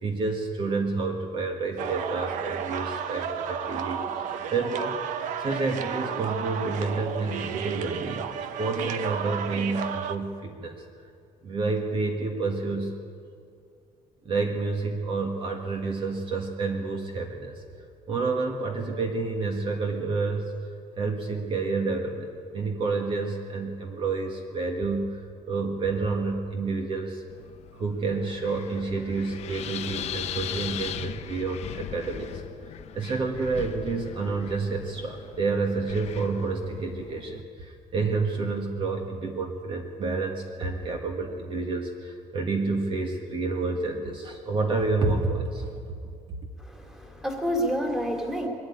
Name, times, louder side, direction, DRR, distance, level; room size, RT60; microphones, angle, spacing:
voice 1, 0.0-4.0 4.5-5.0 5.4-8.3 8.6-10.8 11.4-12.9 14.3-17.5 18.1-20.6 21.0-25.2 25.5-27.2 27.7-32.4 32.9-45.7, right 3 dB, 40° right, 2 dB, 1.8 m, -29 dB
sound 1, 1.8-10.2, right 8 dB, 80° right, 1.0 m, -32 dB
Wind, 27.3-37.4, left 10 dB, 55° left, 0.9 m, -39 dB
voice 2, 46.6-48.5, equal, 5° right, 2 dB, 2.6 m, -29 dB
22.0 x 13.0 x 9.8 m, 2.4 s
cardioid pair, 160°, 13 cm